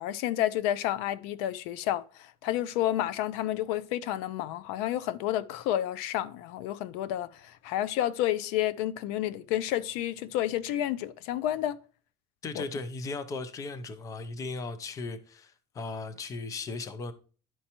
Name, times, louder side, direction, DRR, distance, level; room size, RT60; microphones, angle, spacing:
voice 1, 0.0-11.8 12.5-12.6, left 12 dB, 80° left, 0.5 m, -30 dB
voice 2, 12.4-17.1, left 3 dB, 15° left, 0.4 m, -37 dB
11.0 x 4.4 x 2.9 m
cardioid pair, 170°, 19 cm